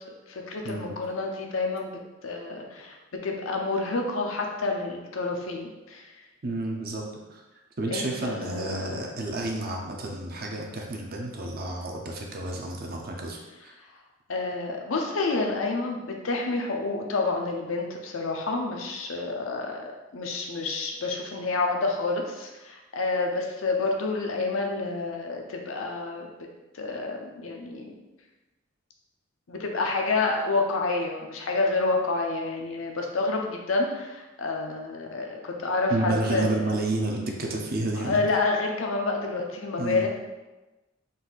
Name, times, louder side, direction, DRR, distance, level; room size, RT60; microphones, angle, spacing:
voice 1, 0.3-3.0 3.2-6.1 7.9-8.9 14.3-19.8 20.1-26.3 26.7-27.9 29.5-36.7 38.0-40.1, left 3 dB, 85° left, 1 dB, 0.7 m, -29 dB
voice 2, 6.4-7.0 7.3-7.4 7.8-13.4 13.6-13.7 35.9-38.3 39.8-40.1, right 2 dB, 50° right, 0 dB, 0.7 m, -30 dB
4.1 x 2.6 x 3.9 m, 1.1 s
head